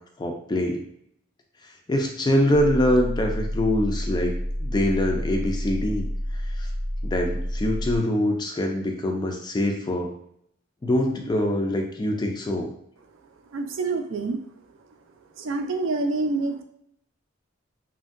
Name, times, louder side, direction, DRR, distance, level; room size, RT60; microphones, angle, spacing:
voice 1, 0.2-0.8 1.9-4.3 4.6-6.1 6.6-6.7 7.0-10.1 10.8-12.7, left 1 dB, 20° left, 2 dB, 0.4 m, -24 dB
sound 1, 2.5-8.0, equal, 65° left, 0.7 m, -29 dB
voice 2, 13.5-14.4 15.4-16.6, right 3 dB, 65° right, 5 dB, 0.4 m, -27 dB
2.9 x 2.5 x 2.4 m, 0.71 s
head